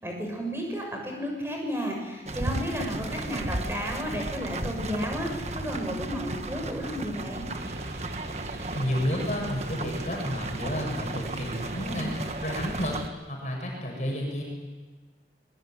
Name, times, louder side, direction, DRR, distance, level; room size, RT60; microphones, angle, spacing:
voice 1, 0.0-7.5, equal, 15° right, 1 dB, 6.8 m, -33 dB
sound 1, 2.3-13.1, right 2 dB, 40° right, 1.4 m, -34 dB
sound 2, 7.5-13.1, right 2 dB, 70° right, 3.9 m, -45 dB
voice 2, 8.7-12.1 12.4-13.0 13.3-14.4, equal, 40° left, 0 dB, 7.9 m, -31 dB
24.5 x 22.5 x 9.5 m, 1.3 s
head